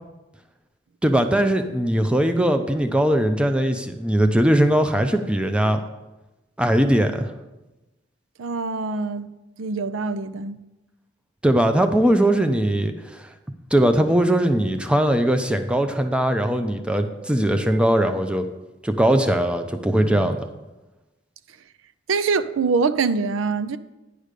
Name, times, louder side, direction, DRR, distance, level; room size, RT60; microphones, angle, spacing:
voice 1, 1.0-5.8 6.6-7.3 11.4-13.3 13.7-18.5 18.8-20.5, right 1 dB, 5° right, 0.5 m, -20 dB
voice 2, 8.4-9.3 9.6-10.6 22.1-23.8, right 4 dB, 90° right, 0.5 m, -24 dB
10.0 x 5.1 x 6.6 m
head